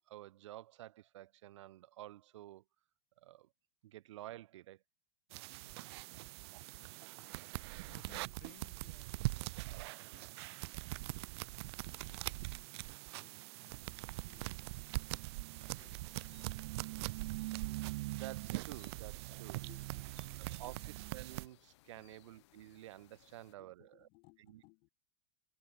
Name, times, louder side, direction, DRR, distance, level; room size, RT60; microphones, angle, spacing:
voice 1, 0.0-2.6 3.2-3.5 3.8-4.8 6.4-6.6 7.0-7.2 12.0-12.2 18.1-19.6 20.5-24.1 24.5-24.6, right 15 dB, 75° right, 1.2 m, -51 dB
voice 2, 5.3-6.3 6.6-7.0 7.3-11.3 11.8-14.6 14.9-17.0 19.6-20.8 21.9-22.2 23.2-24.9, left 33 dB, 50° left, 1.7 m, -66 dB
sound 1, 5.3-21.5, right 21 dB, 60° right, 0.5 m, -42 dB
sound 2, 15.5-23.5, left 18 dB, 70° left, 3.7 m, -67 dB
supercardioid pair, 135°, 15 cm